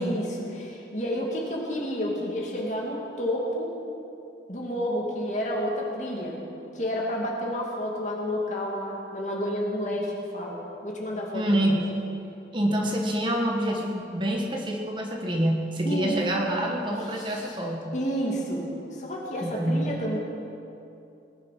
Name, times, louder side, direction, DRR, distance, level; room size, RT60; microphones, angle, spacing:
voice 1, 0.0-3.7 4.5-6.4 6.7-11.8 15.8-16.1 17.1-17.5 17.9-18.7 18.9-20.2, equal, 40° left, -2 dB, 2.5 m, -30 dB
voice 2, 11.3-11.9 12.5-18.0 19.4-20.1, right 1 dB, 25° right, 1 dB, 1.4 m, -27 dB
19.5 x 10.5 x 5.9 m, 2.7 s
head